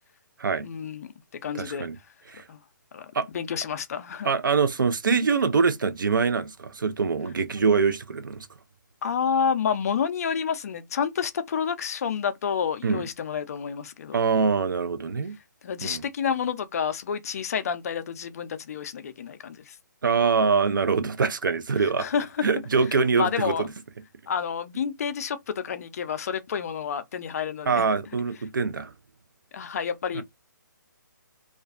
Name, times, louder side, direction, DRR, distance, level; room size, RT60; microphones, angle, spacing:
voice 1, 0.6-1.1 1.4-1.9 2.5-2.6 2.9-3.1 3.3-4.3 9.0-14.2 15.6-19.8 22.0-22.5 23.2-23.7 24.3-27.9 29.5-30.2, left 7 dB, 50° left, 0.4 m, -29 dB
voice 2, 1.5-2.0 2.3-2.4 3.1-3.3 4.2-8.5 12.8-13.1 14.1-15.4 15.8-16.0 20.0-22.1 22.4-23.7 27.7-28.9 30.1-30.2, right 5 dB, 80° right, 0.5 m, -24 dB
2.4 x 2.2 x 2.4 m
figure-of-eight pair, 145°, 11 cm